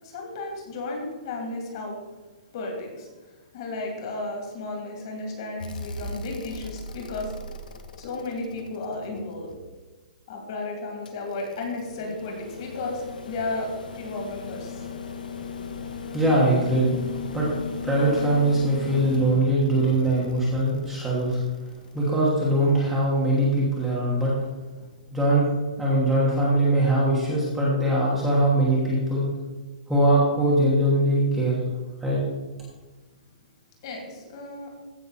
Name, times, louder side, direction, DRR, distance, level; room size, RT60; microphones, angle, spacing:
voice 1, 0.0-2.0 2.5-3.1 3.5-7.3 8.0-9.5 10.3-14.8 33.8-34.7, left 2 dB, 35° left, 0 dB, 2.7 m, -33 dB
sound 1, 5.6-9.8 11.1-22.2 23.8-23.9, left 4 dB, 85° left, 1.5 m, -37 dB
voice 2, 16.1-16.9 17.3-17.5 17.8-21.4 21.9-24.4 25.1-29.3 29.9-31.5 32.0-32.2, right 1 dB, ahead, -8 dB, 1.3 m, -22 dB
15.0 x 5.9 x 4.2 m, 1.3 s
hypercardioid pair, 180°, 4 cm